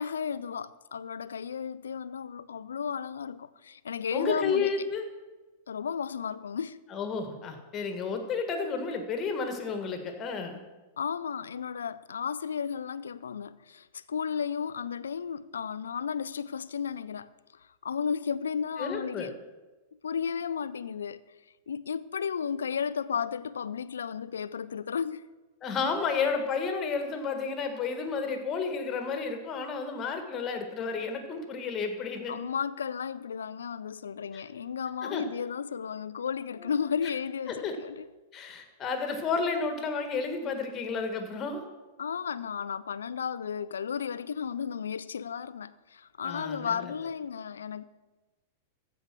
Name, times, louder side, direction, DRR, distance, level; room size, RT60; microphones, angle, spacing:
voice 1, 0.0-4.7 5.7-6.8 11.0-19.3 20.0-21.2 21.7-25.2 32.3-38.1 42.0-47.9, left 7 dB, 75° left, 0.4 m, -34 dB
voice 2, 4.1-5.0 6.9-10.6 18.8-19.3 25.6-32.3 34.3-34.4 35.0-35.2 36.6-36.9 37.5-37.7 38.3-41.6 46.2-46.9, left 5 dB, 30° left, 1.8 m, -32 dB
14.5 x 5.2 x 6.2 m
figure-of-eight pair, 100°, 0 cm